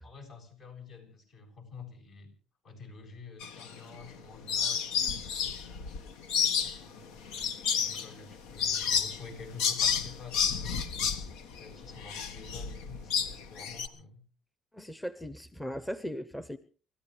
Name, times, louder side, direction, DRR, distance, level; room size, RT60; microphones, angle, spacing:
voice 1, 0.0-2.3 2.6-5.9 6.4-11.1 11.6-14.2, left 4 dB, 60° left, 1 dB, 7.5 m, -49 dB
sound 1, 3.4-4.2 4.5-13.9, left 7 dB, 85° left, 1.4 m, -31 dB
voice 2, 14.7-16.6, equal, 5° left, 12 dB, 0.8 m, -38 dB
29.5 x 14.0 x 3.3 m, 0.38 s
cardioid pair, 115°, 0 cm